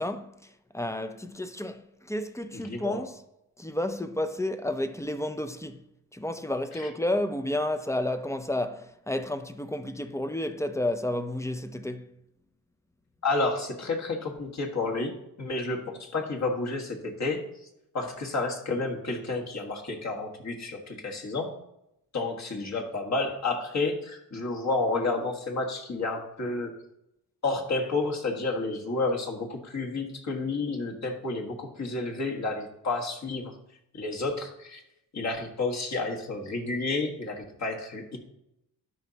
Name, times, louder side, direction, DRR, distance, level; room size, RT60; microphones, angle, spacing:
voice 1, 0.0-3.2 3.6-5.8 6.1-12.1, left 1 dB, 10° left, 0.5 m, -31 dB
voice 2, 2.5-3.1 6.7-6.9 13.2-17.7 17.9-21.5 22.1-26.7 27.4-33.5 33.9-34.8 35.1-38.2, left 3 dB, 50° left, 1.6 m, -30 dB
12.5 x 5.1 x 2.8 m
wide cardioid pair, 110°, 36 cm